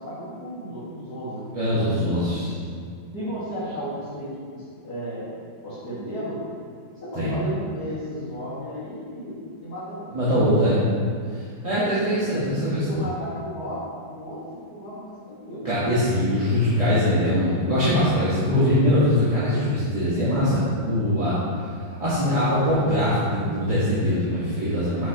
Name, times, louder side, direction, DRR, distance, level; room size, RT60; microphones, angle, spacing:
voice 1, 0.0-1.5 2.0-2.5 3.1-5.3 5.6-6.4 7.0-10.5 12.2-15.7, equal, 55° left, -12 dB, 2.3 m, -34 dB
voice 2, 1.5-2.5 7.1-7.4 10.1-10.9 11.3-13.0 15.6-21.4 22.0-25.1, equal, 20° right, -11 dB, 1.2 m, -22 dB
11.0 x 5.9 x 2.9 m, 2.1 s
omnidirectional pair, 2.2 m